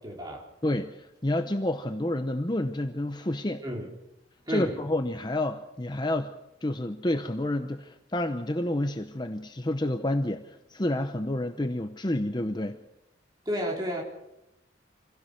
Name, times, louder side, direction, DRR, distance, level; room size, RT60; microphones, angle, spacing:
voice 1, 0.0-0.5 3.6-3.9 4.5-4.8 13.5-14.0, equal, 20° right, -1 dB, 4.0 m, -31 dB
voice 2, 0.6-3.6 4.5-6.3 6.6-12.8, left 1 dB, 20° left, 7 dB, 0.8 m, -29 dB
26.0 x 17.0 x 6.5 m, 0.90 s
head